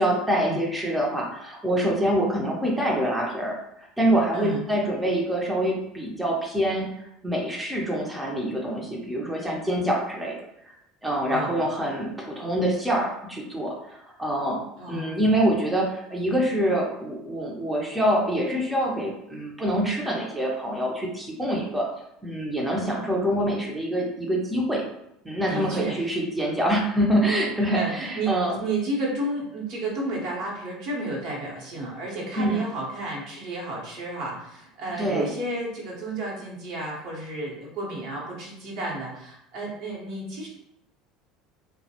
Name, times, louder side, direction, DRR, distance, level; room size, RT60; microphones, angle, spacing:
voice 1, 0.0-6.9 7.2-10.8 11.0-14.6 14.9-21.9 22.2-24.8 25.2-28.6 32.3-32.6 34.9-35.3, right 1 dB, 10° right, -2 dB, 0.6 m, -25 dB
voice 2, 11.3-11.6 14.8-15.2 25.5-26.1 27.7-40.5, right 2 dB, 65° right, -3 dB, 0.9 m, -32 dB
2.2 x 2.0 x 2.8 m, 0.80 s
hypercardioid pair, 80°, 0 cm